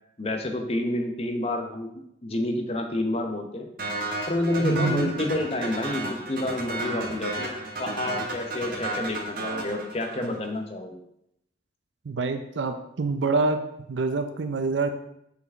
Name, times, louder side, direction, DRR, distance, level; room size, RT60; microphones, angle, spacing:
voice 1, 0.2-1.9 2.2-3.7 4.3-11.0, left 1 dB, 35° left, 5 dB, 0.8 m, -29 dB
sound 1, 3.8-10.5, right 2 dB, 55° right, 1.6 m, -33 dB
voice 2, 4.6-5.1 12.0-13.6 13.9-14.9, right 3 dB, 85° right, 7 dB, 0.5 m, -26 dB
5.9 x 5.9 x 3.5 m, 0.77 s
head